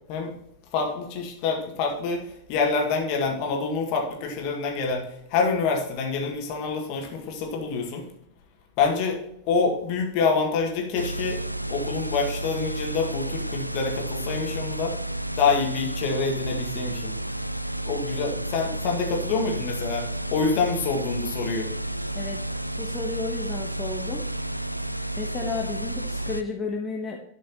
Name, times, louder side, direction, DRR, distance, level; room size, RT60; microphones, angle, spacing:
voice 1, 0.7-8.1 8.8-9.2 9.5-11.4 11.7-15.0 15.4-17.1 17.8-21.7, left 4 dB, 45° left, 1 dB, 1.9 m, -26 dB
sound 1, 10.9-26.4, right 1 dB, 90° right, 0.3 m, -31 dB
voice 2, 22.8-24.2 25.2-27.2, left 3 dB, 15° left, 0 dB, 1.0 m, -32 dB
11.5 x 5.2 x 2.9 m, 0.76 s
figure-of-eight pair, 90°, 0 cm